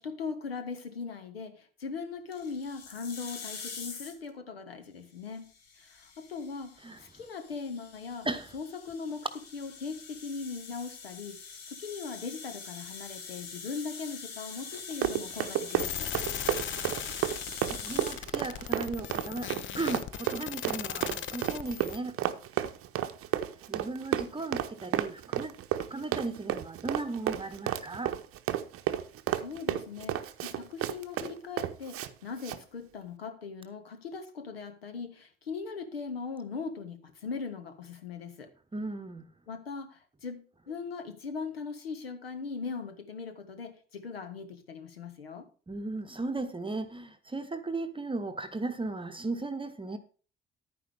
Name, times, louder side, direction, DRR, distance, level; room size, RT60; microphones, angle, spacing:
voice 1, 0.0-5.5 5.8-8.3 8.5-16.1 29.3-38.5 39.5-45.5, left 5 dB, 80° left, 1.0 m, -40 dB
sound 1, 2.3-4.3 5.4-18.2, left 5 dB, 55° left, 1.8 m, -44 dB
Run, 14.7-32.1 32.4-32.6, right 12 dB, 50° right, 0.8 m, -32 dB
sound 2, 15.8-22.0, left 10 dB, 40° left, 0.6 m, -38 dB
voice 2, 17.7-22.2 23.7-25.6 25.9-28.1 38.7-39.2 45.7-50.0, right 2 dB, 15° right, 0.9 m, -36 dB
10.5 x 9.5 x 3.4 m
figure-of-eight pair, 45°, 30 cm